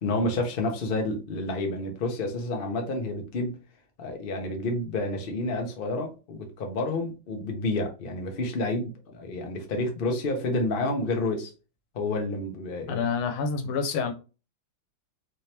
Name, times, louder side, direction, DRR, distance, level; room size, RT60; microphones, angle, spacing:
voice 1, 0.0-3.6 4.0-11.5 11.9-13.0, left 2 dB, 60° left, 0.5 m, -29 dB
voice 2, 12.9-14.1, left 5 dB, 85° left, 1.6 m, -27 dB
3.6 x 2.9 x 3.3 m
omnidirectional pair, 2.2 m